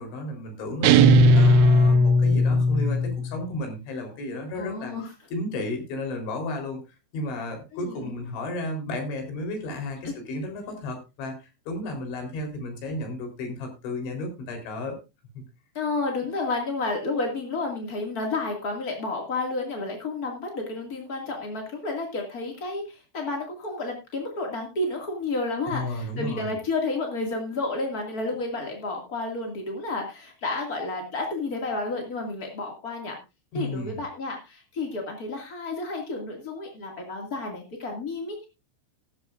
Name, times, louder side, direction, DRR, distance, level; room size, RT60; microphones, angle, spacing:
voice 1, 0.0-4.9 5.3-6.8 7.1-15.0 15.3-15.4 25.7-26.6 33.5-34.0, left 1 dB, 75° left, 4 dB, 6.2 m, -33 dB
sound 1, 0.8-3.4, equal, 85° right, 3.2 m, -17 dB
voice 2, 4.5-5.1 7.7-8.1 10.0-10.1 15.7-33.2 33.5-38.5, left 3 dB, 40° left, 1 dB, 1.2 m, -31 dB
15.5 x 13.0 x 2.5 m, 0.27 s
omnidirectional pair, 5.4 m